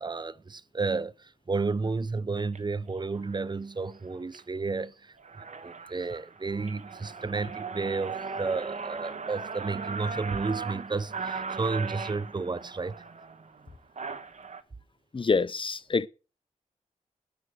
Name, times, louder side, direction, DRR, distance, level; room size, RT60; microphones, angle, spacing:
voice 1, 0.0-5.2 5.6-13.0, right 4 dB, 35° right, 0.8 m, -32 dB
sound 1, 2.4-2.6 3.2-3.5 4.0-4.4 4.8-4.9 5.2-14.6, right 5 dB, 60° right, 1.5 m, -38 dB
voice 2, 15.1-16.1, left 4 dB, 40° left, 0.8 m, -26 dB
19.0 x 6.7 x 6.4 m
cardioid pair, 60°, 14 cm